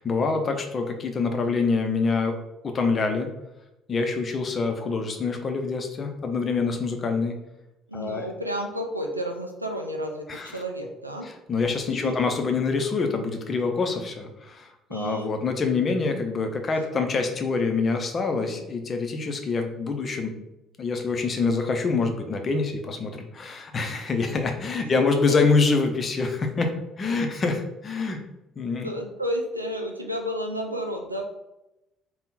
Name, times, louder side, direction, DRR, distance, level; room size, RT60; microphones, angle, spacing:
voice 1, 0.0-2.3 2.6-3.3 3.9-7.3 7.9-8.3 10.3-10.6 11.2-20.3 20.8-26.7 27.0-28.2 28.6-28.9, left 4 dB, 35° left, 4 dB, 0.6 m, -26 dB
voice 2, 7.9-11.3 11.9-12.2 14.9-15.3 24.8-24.9 25.1-25.2 28.8-31.2, equal, 90° right, 3 dB, 0.3 m, -31 dB
3.6 x 2.2 x 4.0 m, 0.93 s
figure-of-eight pair, 50°, 0 cm